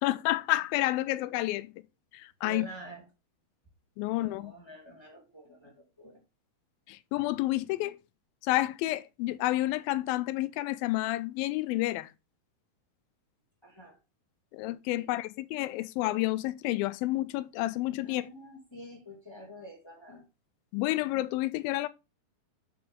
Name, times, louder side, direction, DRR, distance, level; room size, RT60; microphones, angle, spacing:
voice 1, 0.0-1.7 2.1-2.7 4.0-4.5 6.9-8.0 8.4-12.1 14.5-18.2 20.7-21.9, left 17 dB, 85° left, 2.3 m, -30 dB
voice 2, 2.4-3.1 4.1-6.2 13.6-14.0 15.0-15.1 18.0-20.2, right 1 dB, 10° left, 1.8 m, -47 dB
7.8 x 6.8 x 3.6 m
omnidirectional pair, 4.2 m